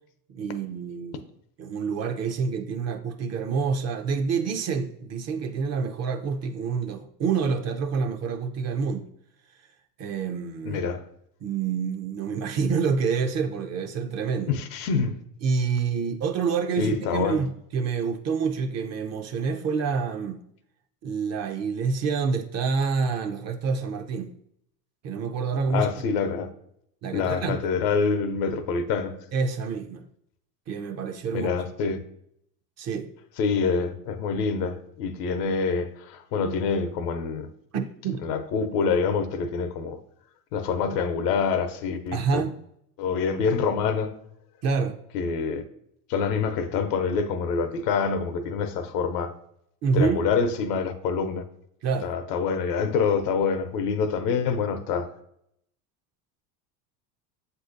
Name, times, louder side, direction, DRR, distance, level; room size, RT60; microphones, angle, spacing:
voice 1, 0.3-1.2 1.6-9.1 10.0-10.8 11.4-14.5 15.4-20.4 21.0-24.3 25.0-25.9 27.0-27.6 29.3-30.1 30.7-31.5 32.8-33.1 37.7-38.2 42.1-42.6 44.6-44.9 49.8-50.2 51.8-52.1, right 5 dB, 35° right, 0.5 m, -27 dB
voice 2, 10.7-11.0 14.5-15.2 16.8-17.4 25.7-26.5 27.1-29.2 31.3-32.0 33.4-37.5 38.2-40.0 40.5-42.4 43.0-44.2 45.1-45.6 46.1-49.3 49.9-51.4 52.0-55.1, left 5 dB, 80° left, 0.7 m, -26 dB
7.5 x 2.7 x 2.5 m
hypercardioid pair, 85°, 47 cm